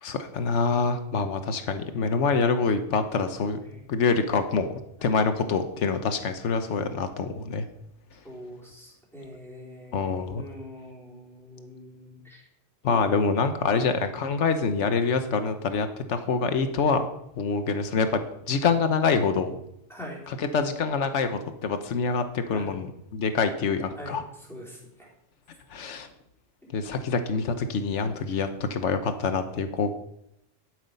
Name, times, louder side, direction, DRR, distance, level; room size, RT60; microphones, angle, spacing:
voice 1, 0.0-3.6 3.9-7.7 9.9-10.4 12.8-17.1 17.4-19.6 20.3-24.2 25.7-26.1 26.7-29.9, left 5 dB, 90° left, 8 dB, 1.2 m, -26 dB
voice 2, 8.2-12.4 12.8-13.1 13.7-13.9 19.9-20.2 22.5-22.7 24.0-24.2 24.5-25.1 28.2-28.4, equal, ahead, -4 dB, 3.8 m, -43 dB
12.0 x 7.9 x 5.3 m, 0.78 s
omnidirectional pair, 1.2 m